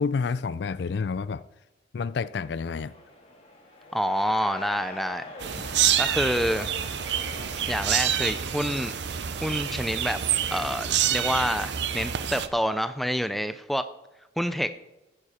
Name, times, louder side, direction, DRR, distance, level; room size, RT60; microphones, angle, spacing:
voice 1, 0.0-1.4 1.9-2.9, left 5 dB, 65° left, 0.4 m, -29 dB
sound 1, 2.7-12.7, left 1 dB, 30° left, 2.2 m, -45 dB
voice 2, 3.9-5.2 6.0-6.7 7.7-8.9 9.4-10.2 10.5-13.8 14.4-14.7, equal, ahead, 0.4 m, -27 dB
sound 2, 5.4-12.5, right 9 dB, 70° right, 0.7 m, -27 dB
14.0 x 9.8 x 4.3 m
head